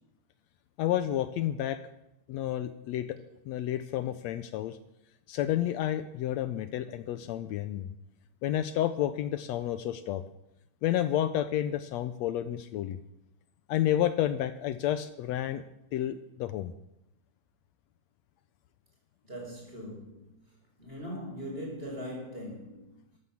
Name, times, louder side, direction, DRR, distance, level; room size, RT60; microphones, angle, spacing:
voice 1, 0.8-1.8 2.3-3.2 3.5-4.8 5.3-7.9 8.4-10.2 10.8-13.0 13.7-15.6 15.9-16.7, left 12 dB, 75° left, 1.8 m, -30 dB
voice 2, 19.2-20.3 20.8-22.9, equal, 20° right, 5.4 m, -40 dB
14.0 x 11.5 x 7.2 m
omnidirectional pair, 3.4 m